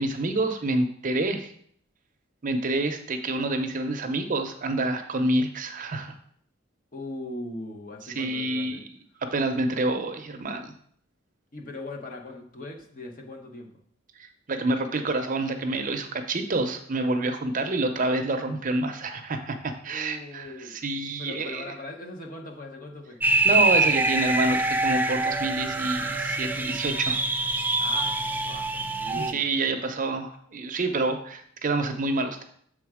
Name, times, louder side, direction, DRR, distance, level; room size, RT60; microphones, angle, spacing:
voice 1, 0.0-1.5 2.4-6.1 8.1-8.9 9.3-10.7 14.2-21.7 23.4-27.2 29.2-32.4, right 2 dB, 40° right, 6 dB, 0.6 m, -27 dB
voice 2, 6.9-8.8 11.5-13.7 19.9-20.8 21.2-23.2 27.8-29.8, left 2 dB, 45° left, 2 dB, 1.0 m, -40 dB
sound 1, 23.2-29.3, right 2 dB, 10° right, 0.3 m, -25 dB
7.0 x 3.7 x 4.8 m, 0.62 s
head